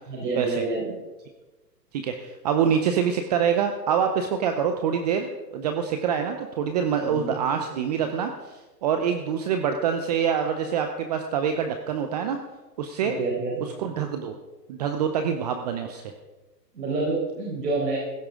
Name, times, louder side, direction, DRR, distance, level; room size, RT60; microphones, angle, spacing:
voice 1, 0.1-0.9 7.0-7.4 13.0-13.7 16.7-18.0, right 3 dB, 75° right, -4 dB, 4.6 m, -28 dB
voice 2, 1.9-12.4 12.8-13.2 13.8-14.3 14.7-16.1, right 7 dB, 25° right, 6 dB, 0.6 m, -25 dB
16.0 x 12.5 x 3.7 m, 1.2 s
hypercardioid pair, 140°, 49 cm